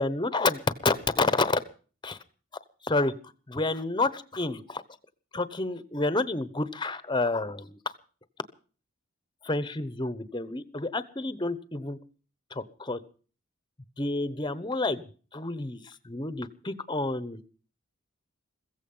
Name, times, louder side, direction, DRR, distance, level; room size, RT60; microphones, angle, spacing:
voice 1, 0.0-1.6 2.0-2.2 2.8-3.1 3.5-4.8 5.3-7.8 9.4-12.0 12.5-13.0 14.0-15.0 15.3-17.4, left 2 dB, 20° left, 15 dB, 1.0 m, -29 dB
15.5 x 15.0 x 5.5 m, 0.39 s
head